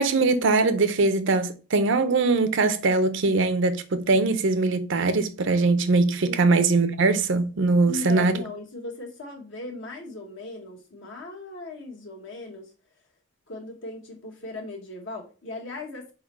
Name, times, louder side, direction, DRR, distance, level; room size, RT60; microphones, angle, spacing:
voice 1, 0.0-8.4, right 3 dB, 65° right, 0.6 m, -21 dB
voice 2, 7.8-12.7 13.5-16.1, left 2 dB, 65° left, 1.3 m, -38 dB
4.3 x 3.6 x 3.1 m
head